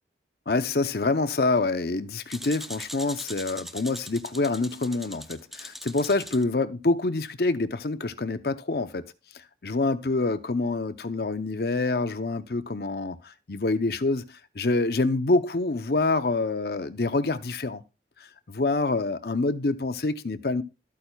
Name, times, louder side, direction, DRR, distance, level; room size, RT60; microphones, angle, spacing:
voice 1, 0.5-9.0 9.6-17.8 18.2-20.6, left 3 dB, 60° left, 0.7 m, -26 dB
sound 1, 2.3-6.4, equal, ahead, 0.5 m, -41 dB
13.0 x 8.5 x 2.3 m
head